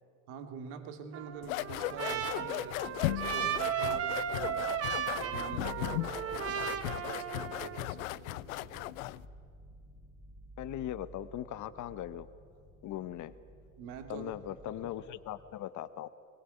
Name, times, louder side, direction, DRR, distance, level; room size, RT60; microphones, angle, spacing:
voice 1, 0.3-4.6 5.1-9.0 13.8-14.4 14.7-14.8, right 7 dB, 60° right, 6 dB, 2.4 m, -45 dB
Trumpet, 1.1-7.9, right 8 dB, 35° right, 1.5 m, -35 dB
sound 1, 1.3-15.5, right 1 dB, 5° left, 3.5 m, -55 dB
sound 2, 1.4-9.3, left 18 dB, 70° left, 0.6 m, -37 dB
voice 2, 10.6-12.3 12.8-13.3 14.1-16.1, left 12 dB, 40° left, 14 dB, 1.0 m, -39 dB
21.0 x 20.0 x 9.9 m, 2.3 s
hypercardioid pair, 80°, 44 cm